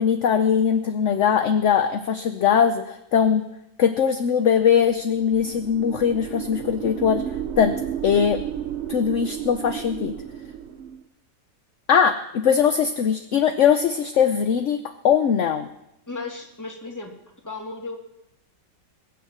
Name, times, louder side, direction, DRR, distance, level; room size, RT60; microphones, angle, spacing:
voice 1, 0.0-3.4 3.8-7.2 7.6-7.7 8.0-8.4 8.9-10.1 11.9-14.8 15.0-15.7, left 7 dB, 60° left, 8 dB, 0.8 m, -20 dB
sound 1, 4.9-11.0, right 9 dB, 60° right, 0.7 m, -33 dB
voice 2, 16.1-17.2 17.4-18.0, left 3 dB, 10° left, 1 dB, 2.0 m, -34 dB
21.0 x 7.3 x 7.4 m, 0.85 s
omnidirectional pair, 1.9 m